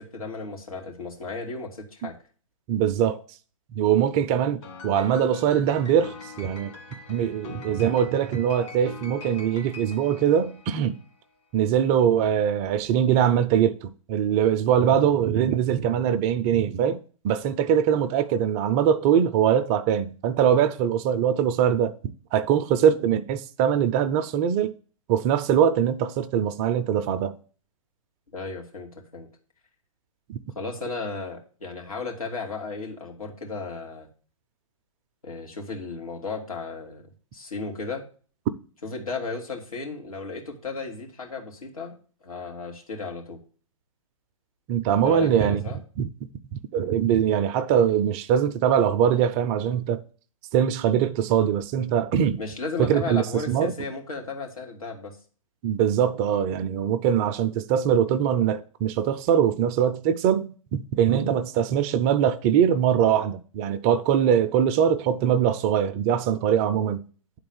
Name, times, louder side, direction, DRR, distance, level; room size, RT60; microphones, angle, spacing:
voice 1, 0.0-2.2 28.3-29.3 30.5-34.1 35.2-38.1 38.8-42.0 42.2-43.4 45.0-45.8 52.4-55.2, left 4 dB, 85° left, 2.7 m, -35 dB
voice 2, 2.7-3.2 3.8-6.7 7.1-11.0 11.5-17.0 17.2-21.9 22.3-24.7 25.1-27.4 30.3-30.4 44.7-45.6 46.0-46.1 46.5-50.0 50.5-52.4 52.8-53.7 55.6-67.0, right 9 dB, 25° right, 0.5 m, -22 dB
Piano, 4.6-11.1, left 4 dB, 50° left, 2.1 m, -43 dB
9.6 x 4.0 x 7.0 m
hypercardioid pair, 135°, 18 cm